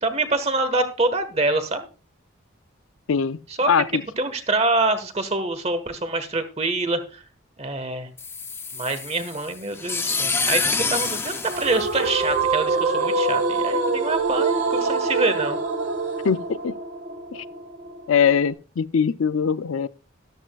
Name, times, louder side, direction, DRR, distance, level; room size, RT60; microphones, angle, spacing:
voice 1, 0.0-1.8 3.6-7.2 7.6-8.1 8.7-15.6, right 2 dB, 30° right, 1.4 m, -25 dB
voice 2, 3.7-4.0 16.2-16.7 17.3-17.4 18.1-19.9, left 6 dB, 85° left, 0.5 m, -21 dB
sound 1, 8.2-12.5, left 4 dB, 10° left, 0.5 m, -27 dB
sound 2, 11.5-18.5, right 3 dB, 55° right, 2.1 m, -25 dB
13.5 x 12.5 x 2.3 m
head